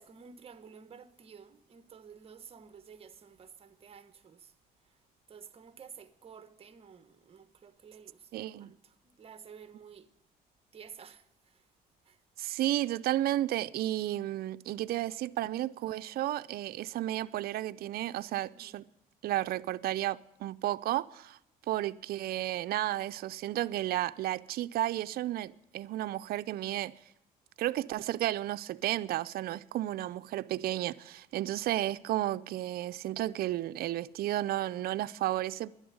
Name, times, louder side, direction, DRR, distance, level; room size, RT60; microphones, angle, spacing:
voice 1, 0.0-4.5 5.3-10.1 10.7-11.6 12.0-12.2 18.5-18.8, right 6 dB, 35° right, 1.2 m, -52 dB
voice 2, 8.3-8.7 12.4-18.8 19.2-21.4 21.7-26.9 27.6-35.7, right 14 dB, 65° right, 0.5 m, -33 dB
11.0 x 11.0 x 9.5 m
cardioid pair, 110°, 17 cm